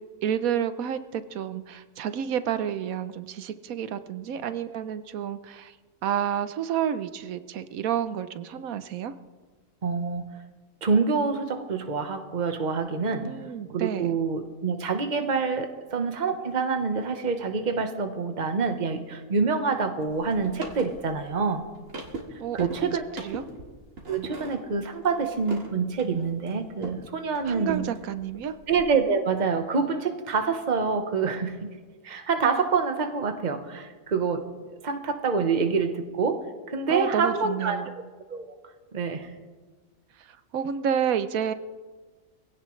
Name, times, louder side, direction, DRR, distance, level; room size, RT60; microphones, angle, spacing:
voice 1, 0.2-5.7 6.0-9.1 13.3-14.2 22.4-23.4 27.5-28.5 36.9-37.9 40.3-41.5, right 9 dB, 90° right, 12 dB, 1.2 m, -30 dB
voice 2, 9.8-10.3 10.8-13.3 13.7-21.7 22.5-23.0 24.1-27.9 28.7-31.7 32.0-34.5 34.8-37.8 38.3-38.6 38.9-39.3, right 5 dB, 35° right, 6 dB, 1.2 m, -26 dB
sound 1, 20.0-27.0 27.3-28.8, right 3 dB, 70° right, 2.4 m, -41 dB
22.5 x 16.5 x 3.2 m, 1.4 s
omnidirectional pair, 1.4 m